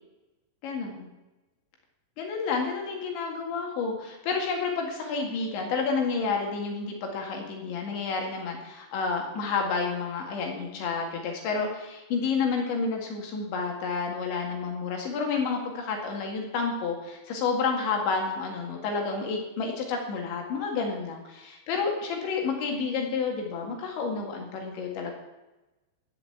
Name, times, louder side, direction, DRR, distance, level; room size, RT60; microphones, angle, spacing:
voice 1, 0.6-1.1 2.2-25.1, left 5 dB, 65° left, 2 dB, 4.3 m, -30 dB
17.0 x 5.8 x 8.6 m, 1.0 s
omnidirectional pair, 5.8 m